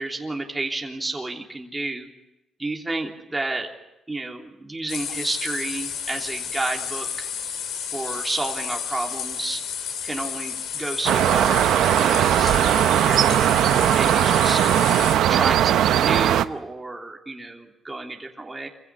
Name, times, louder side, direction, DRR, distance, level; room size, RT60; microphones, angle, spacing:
voice 1, 0.0-2.1 2.6-3.7 4.1-7.3 7.9-9.6 10.0-13.5 13.9-14.6 15.3-18.7, right 2 dB, 15° right, 1 dB, 3.3 m, -31 dB
sound 1, 4.9-15.2, left 7 dB, 80° left, 3.6 m, -32 dB
sound 2, 11.1-16.5, right 11 dB, 80° right, 0.8 m, -19 dB
26.0 x 16.0 x 10.0 m, 0.95 s
cardioid pair, 90°, 0 cm